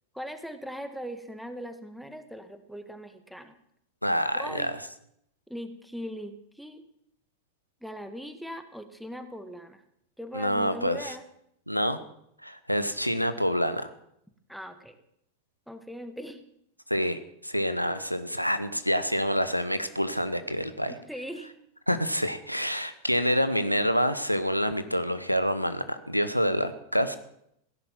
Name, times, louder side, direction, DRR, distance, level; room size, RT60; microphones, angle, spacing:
voice 1, 0.1-3.5 4.4-4.7 5.5-6.8 7.8-9.8 10.2-11.2 14.5-15.0 15.7-16.5 20.9-21.6, equal, ahead, 9 dB, 1.7 m, -40 dB
voice 2, 4.0-4.7 10.3-11.1 11.7-12.0 12.4-13.9 16.9-20.9 21.9-27.2, equal, 90° left, 11 dB, 1.0 m, -27 dB
16.5 x 11.0 x 7.5 m, 0.74 s
figure-of-eight pair, 90°, 0 cm